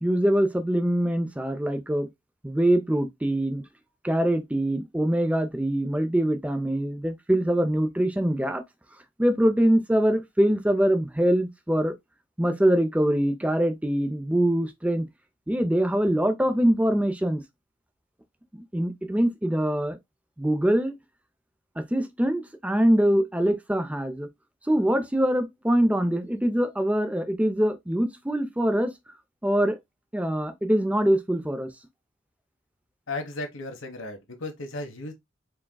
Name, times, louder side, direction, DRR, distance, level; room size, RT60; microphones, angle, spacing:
voice 1, 0.0-2.1 2.4-3.6 4.0-8.6 9.2-11.9 12.4-15.1 15.5-17.4 18.5-20.0 20.4-20.9 21.8-24.3 24.7-28.9 29.4-29.8 30.1-31.7, right 1 dB, 5° right, 0.5 m, -23 dB
voice 2, 33.1-35.1, left 2 dB, 85° left, 1.3 m, -35 dB
4.6 x 3.6 x 2.2 m
head